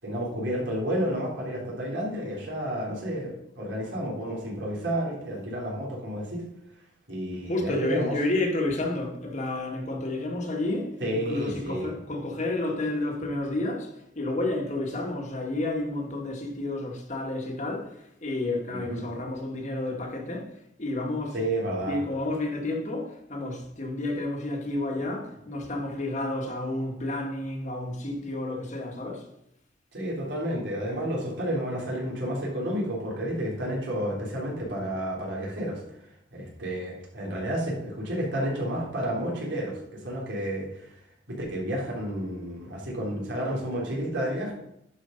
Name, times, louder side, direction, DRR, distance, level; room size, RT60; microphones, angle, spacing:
voice 1, 0.0-6.4 7.1-8.2 11.0-11.9 18.7-19.0 21.3-22.0 29.9-35.8 36.3-40.9 41.3-44.5, right 1 dB, 85° right, 3.7 m, -31 dB
voice 2, 7.5-20.5 20.8-21.3 21.9-29.3, left 2 dB, 40° left, 1.6 m, -31 dB
11.5 x 5.2 x 5.2 m
head